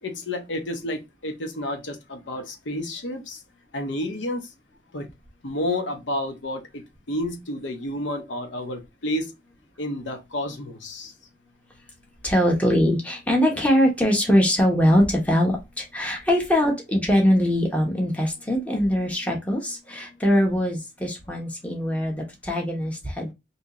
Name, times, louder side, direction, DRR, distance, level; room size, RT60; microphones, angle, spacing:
voice 1, 0.0-3.4 3.7-4.5 4.9-5.1 5.4-9.3 9.8-11.1, left 1 dB, 80° left, 0.8 m, -30 dB
voice 2, 12.2-23.3, equal, 5° left, 0.9 m, -22 dB
2.8 x 2.7 x 3.7 m
head